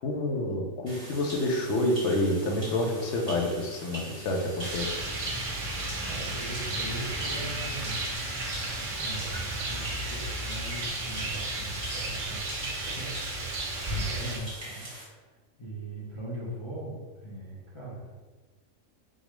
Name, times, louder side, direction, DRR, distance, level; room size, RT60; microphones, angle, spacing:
voice 1, 0.0-4.9, left 1 dB, 65° left, 1 dB, 0.8 m, -28 dB
sound 1, 0.9-15.0, right 1 dB, 20° right, 0.9 m, -43 dB
Rain, 4.6-14.4, right 2 dB, 55° right, 0.6 m, -33 dB
voice 2, 6.1-8.0 9.0-13.2 13.9-15.3 15.6-18.2, right 1 dB, 35° left, -8 dB, 0.5 m, -40 dB
4.0 x 2.3 x 3.1 m, 1.3 s
omnidirectional pair, 1.5 m